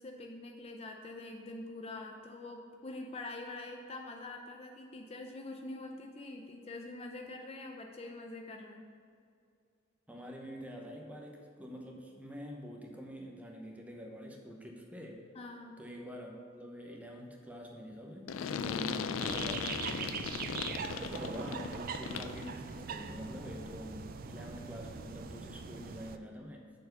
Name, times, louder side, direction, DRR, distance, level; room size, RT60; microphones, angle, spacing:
voice 1, 0.0-8.8 15.3-15.7 20.9-21.1, left 2 dB, 30° left, 3 dB, 0.4 m, -45 dB
voice 2, 10.1-15.2 15.8-20.2 21.0-26.7, equal, 10° right, 1 dB, 0.8 m, -46 dB
sound 1, 18.3-22.5, left 6 dB, 90° left, 0.4 m, -37 dB
sound 2, 19.2-26.2, right 6 dB, 45° right, 0.4 m, -42 dB
6.6 x 4.5 x 6.5 m, 2.3 s
head